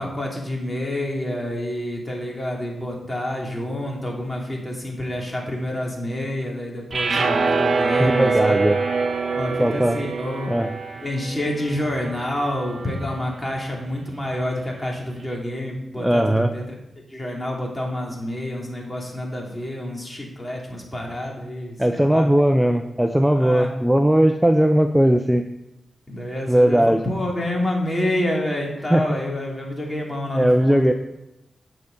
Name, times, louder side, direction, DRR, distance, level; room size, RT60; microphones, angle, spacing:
voice 1, 0.0-8.6 9.3-10.5 11.0-16.8 17.1-22.3 23.4-23.7 26.1-30.9, left 1 dB, 20° left, -1 dB, 2.8 m, -28 dB
sound 1, 6.9-13.2, right 4 dB, 60° right, 0.9 m, -25 dB
voice 2, 8.0-8.8 9.6-10.0 10.5-10.7 16.0-16.5 21.8-25.4 26.5-27.0 28.9-29.2 30.3-30.9, right 1 dB, 5° right, 7 dB, 0.6 m, -18 dB
9.5 x 6.5 x 5.3 m, 0.92 s
cardioid pair, 75°, 0 cm